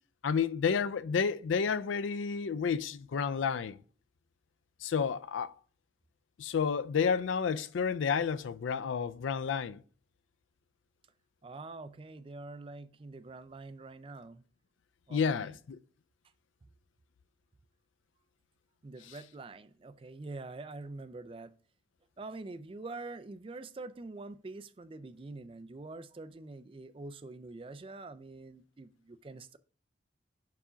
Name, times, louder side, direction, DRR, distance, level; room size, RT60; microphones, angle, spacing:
voice 1, 0.2-3.8 4.8-5.5 6.4-9.8 15.1-15.8, left 6 dB, 85° left, 0.4 m, -30 dB
voice 2, 11.4-14.4 15.1-15.6 18.8-21.5 22.2-29.6, right 3 dB, 30° right, 0.3 m, -45 dB
5.0 x 4.7 x 5.6 m
head